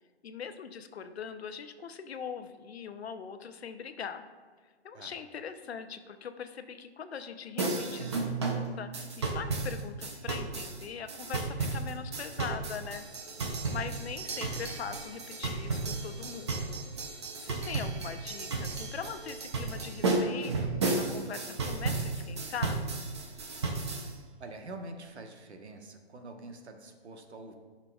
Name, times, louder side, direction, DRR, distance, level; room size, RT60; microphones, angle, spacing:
voice 1, 0.2-4.2 4.8-13.1 13.7-16.8 17.4-22.9, left 7 dB, 70° left, 9 dB, 0.7 m, -41 dB
sound 1, 7.6-24.1, right 3 dB, 25° right, 0.6 m, -33 dB
voice 2, 24.4-27.5, right 2 dB, 80° right, 4 dB, 1.2 m, -45 dB
13.5 x 5.8 x 2.3 m, 1.5 s
hypercardioid pair, 165°, 33 cm